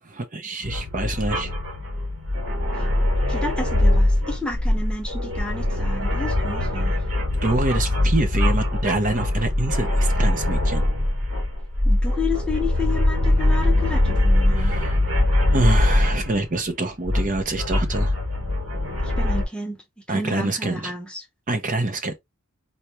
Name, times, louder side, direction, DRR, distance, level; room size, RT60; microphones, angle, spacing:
voice 1, 0.0-1.5 7.4-10.9 14.6-15.0 15.5-18.2 20.1-20.9 21.5-22.2, right 2 dB, 35° right, 0.7 m, -26 dB
sound 1, 0.6-16.4 17.0-19.5, left 1 dB, 60° right, 3.0 m, -22 dB
voice 2, 3.3-7.0 11.8-14.7 19.0-21.3, left 3 dB, 5° left, 0.8 m, -31 dB
4.3 x 2.9 x 3.2 m
head